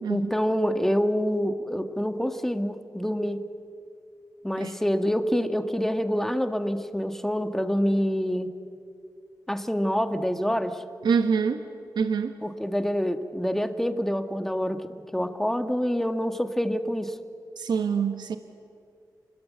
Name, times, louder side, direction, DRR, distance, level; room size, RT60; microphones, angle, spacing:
voice 1, 0.1-3.4 4.4-8.5 9.5-10.8 12.4-17.1, equal, 5° left, 8 dB, 1.7 m, -26 dB
voice 2, 11.0-11.6 11.9-12.3 17.6-18.4, right 6 dB, 90° right, 7 dB, 1.4 m, -25 dB
29.0 x 21.5 x 9.5 m, 2.4 s
wide cardioid pair, 105°, 7 cm